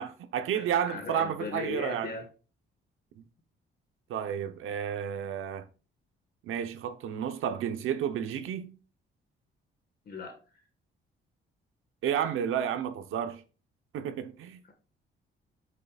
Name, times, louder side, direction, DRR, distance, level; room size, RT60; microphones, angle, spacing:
voice 1, 0.0-2.1 3.2-3.3 4.1-5.6 6.4-8.7 12.0-13.4 13.9-14.6, right 9 dB, 80° right, 0.9 m, -31 dB
voice 2, 0.5-2.2 10.0-10.4 14.6-14.7, left 4 dB, 50° left, 1.6 m, -38 dB
8.6 x 6.7 x 2.4 m
cardioid pair, 130°, 21 cm